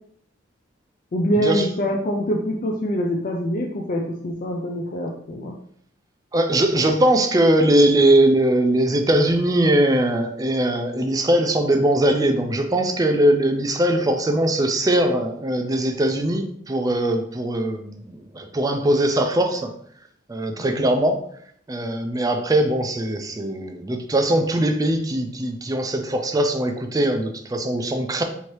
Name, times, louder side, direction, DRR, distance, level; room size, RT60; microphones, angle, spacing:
voice 1, 1.1-5.5 20.6-20.9, equal, 45° left, 0 dB, 0.4 m, -25 dB
voice 2, 6.3-19.7 20.3-21.2 21.7-28.2, right 1 dB, 20° right, 5 dB, 0.4 m, -20 dB
4.5 x 2.7 x 3.1 m, 0.65 s
head